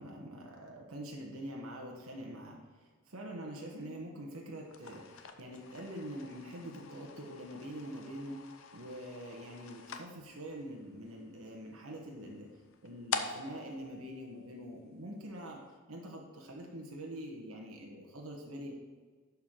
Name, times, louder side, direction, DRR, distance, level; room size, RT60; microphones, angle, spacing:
voice 1, 0.0-12.5 12.8-15.6 15.9-18.7, equal, 80° right, 0 dB, 1.2 m, -45 dB
sound 1, 4.6-15.0, left 5 dB, 70° left, 0.7 m, -45 dB
11.5 x 4.7 x 3.7 m, 1.5 s
head